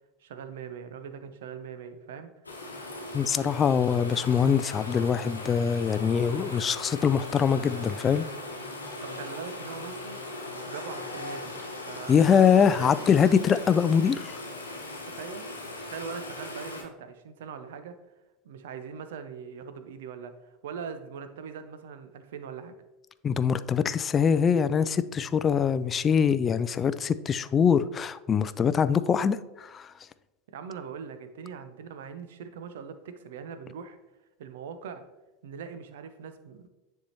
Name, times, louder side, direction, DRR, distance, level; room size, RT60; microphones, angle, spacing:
voice 1, 0.2-2.3 9.0-10.2 10.6-11.6 11.9-13.1 15.1-15.5 15.8-18.0 18.4-22.8 30.5-34.0 34.4-35.0 35.4-36.7, right 6 dB, 65° right, 10 dB, 0.6 m, -41 dB
sound 1, 2.4-16.8, left 2 dB, 90° left, 1.0 m, -39 dB
voice 2, 3.1-8.3 12.1-14.4 23.2-29.9, left 7 dB, 30° left, 14 dB, 0.3 m, -23 dB
9.8 x 3.5 x 2.9 m, 1.0 s
figure-of-eight pair, 80°, 0 cm